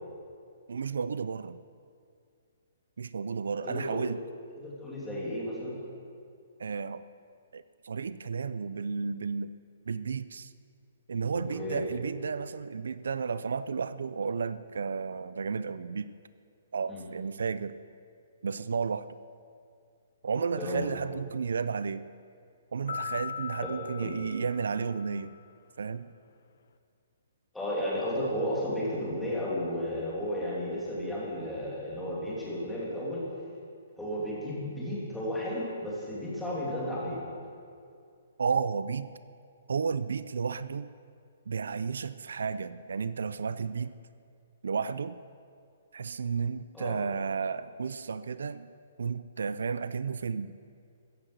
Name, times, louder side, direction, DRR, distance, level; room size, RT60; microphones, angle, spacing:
voice 1, 0.7-1.6 3.0-4.2 6.6-7.0 7.5-9.5 9.9-10.5 11.1-16.1 16.7-17.8 18.4-19.1 20.2-22.0 22.7-25.3 25.8-26.1 38.4-39.1 39.7-40.9 41.5-44.0 44.6-45.2 45.9-48.7 49.0-50.5, right 5 dB, 85° right, 15 dB, 0.5 m, -32 dB
voice 2, 3.6-4.0 4.5-5.8 11.3-11.8 16.9-17.0 20.6-20.8 24.0-24.1 27.5-33.2 34.0-37.2 46.7-47.0, equal, 5° left, -7 dB, 2.8 m, -33 dB
sound 1, 22.9-25.4, left 8 dB, 65° left, 0.9 m, -40 dB
15.0 x 9.7 x 7.9 m, 2.3 s
hypercardioid pair, 175°, 0 cm